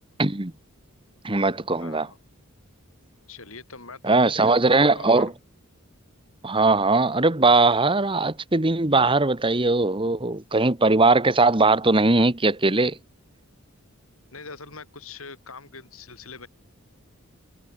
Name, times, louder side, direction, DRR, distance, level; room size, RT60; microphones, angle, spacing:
voice 1, 0.2-0.5 1.2-2.1 4.0-5.3 6.4-13.0, right 3 dB, 25° right, 1.3 m, -20 dB
voice 2, 1.7-2.2 3.3-5.3 14.3-16.5, left 4 dB, 70° left, 4.9 m, -42 dB
head